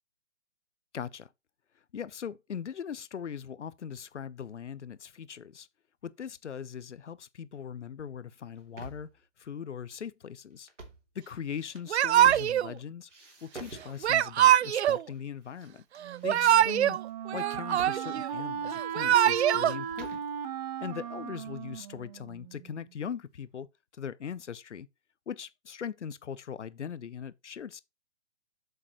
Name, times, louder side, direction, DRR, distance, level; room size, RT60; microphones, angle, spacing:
voice 1, 0.9-1.3 1.9-5.7 6.0-9.1 9.4-10.7 11.1-13.1 13.4-15.8 16.2-17.0 17.3-20.2 20.8-23.7 23.9-24.9 25.3-27.8, left 8 dB, 75° left, 0.9 m, -40 dB
sound 1, 8.4-9.2 10.6-11.1 11.6-12.8 13.1-14.4 15.1-15.7 15.9-17.0 17.8-18.0 18.3-18.4 18.8-20.3, right 3 dB, 85° right, 3.2 m, -48 dB
Yell / Crying sobbing, 11.9-12.7 14.0-15.0 16.1-17.0 17.3-18.3 18.8-19.7, right 11 dB, 65° right, 0.5 m, -23 dB
Wind instrument woodwind instrument, 16.0-22.9, right 7 dB, 35° right, 1.0 m, -37 dB
8.3 x 6.7 x 3.1 m
figure-of-eight pair, 135°, 36 cm